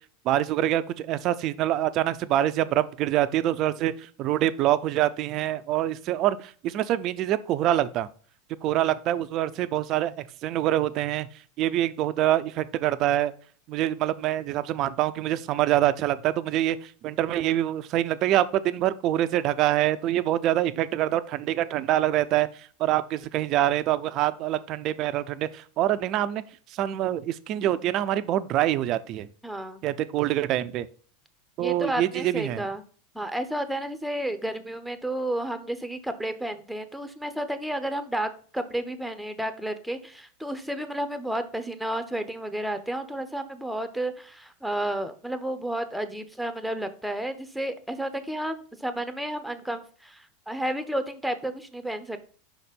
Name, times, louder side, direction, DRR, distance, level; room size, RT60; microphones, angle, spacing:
voice 1, 0.2-8.1 8.6-11.3 11.6-13.3 13.7-22.5 22.8-26.4 26.7-29.3 29.8-30.9 31.6-32.7, right 13 dB, 45° right, 13 dB, 0.5 m, -25 dB
voice 2, 29.4-29.8 31.6-32.8 33.1-52.2, right 1 dB, ahead, 10 dB, 0.9 m, -31 dB
5.8 x 4.2 x 5.2 m, 0.44 s
hypercardioid pair, 95°, 0 cm